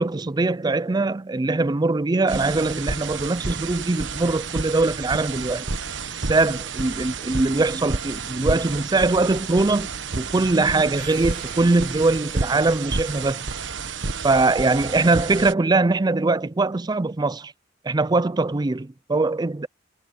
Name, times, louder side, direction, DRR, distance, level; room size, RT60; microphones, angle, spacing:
voice 1, 0.0-5.7 6.3-9.9 10.2-13.4 14.2-17.5 17.9-19.7, right 3 dB, 20° right, 0.4 m, -22 dB
sound 1, 2.3-15.5, right 4 dB, 70° right, 1.3 m, -30 dB
sound 2, 11.0-12.9, right 6 dB, 50° right, 2.6 m, -45 dB
head